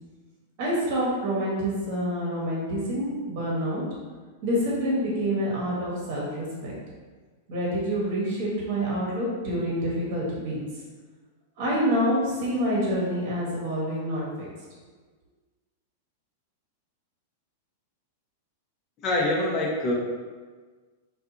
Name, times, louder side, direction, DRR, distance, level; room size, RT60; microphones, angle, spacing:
voice 1, 0.6-3.8 4.4-6.7 7.5-10.6 11.6-14.5, equal, 55° right, -5 dB, 0.9 m, -27 dB
voice 2, 19.0-19.9, left 1 dB, 40° left, -2 dB, 0.6 m, -24 dB
2.7 x 2.3 x 2.5 m, 1.4 s
hypercardioid pair, 120°, 0 cm